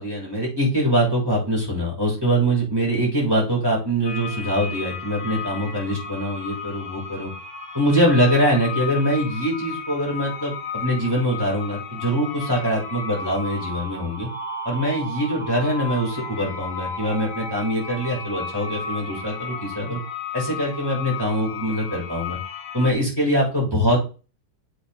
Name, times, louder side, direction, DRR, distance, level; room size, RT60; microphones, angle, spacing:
voice 1, 0.0-7.3 7.7-14.3 14.6-20.0 20.3-22.4 22.7-24.0, equal, 10° right, -4 dB, 5.6 m, -23 dB
sound 1, 4.1-22.9, left 4 dB, 75° left, 2.6 m, -34 dB
8.7 x 8.1 x 3.6 m, 0.33 s
omnidirectional pair, 2.2 m